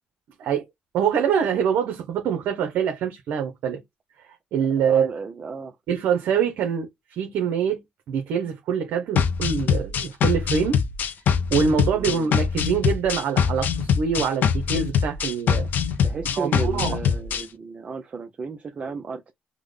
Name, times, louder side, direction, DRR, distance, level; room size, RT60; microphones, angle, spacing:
voice 1, 0.9-3.8 4.2-5.1 5.9-6.9 7.2-10.8 11.5-15.7 16.4-17.0, right 7 dB, 80° right, 0.7 m, -24 dB
voice 2, 4.8-5.8 11.9-12.3 16.0-19.3, right 4 dB, 40° right, 0.5 m, -34 dB
sound 1, 9.2-17.4, left 7 dB, 70° left, 0.5 m, -23 dB
3.6 x 2.1 x 3.2 m
cardioid pair, 85°, 3 cm